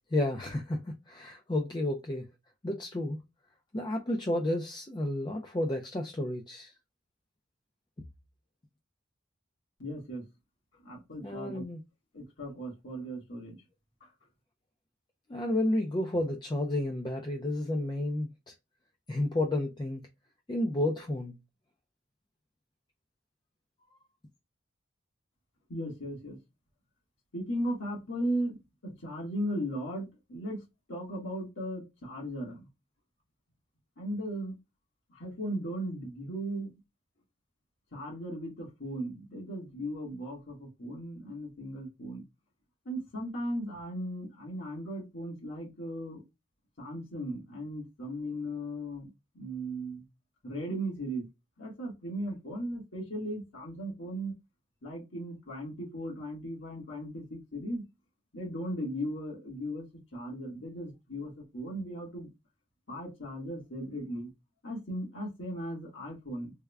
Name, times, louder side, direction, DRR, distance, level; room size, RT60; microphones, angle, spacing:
voice 1, 0.1-2.3 2.6-3.2 3.7-6.7 11.2-11.8 15.3-18.5 19.1-20.0 20.5-21.3, left 1 dB, 20° left, 0.4 m, -31 dB
voice 2, 9.8-10.2 10.8-11.6 12.1-13.6 14.0-14.1 25.7-26.4 27.3-30.6 30.9-32.7 34.0-34.6 35.1-36.7 37.9-42.2 42.8-46.2 46.8-49.1 49.3-50.0 50.4-51.3 51.6-54.3 54.8-57.8 58.3-59.9 60.1-62.3 62.9-64.3 64.6-66.5, equal, 80° left, 1.5 m, -37 dB
3.5 x 2.2 x 3.3 m
head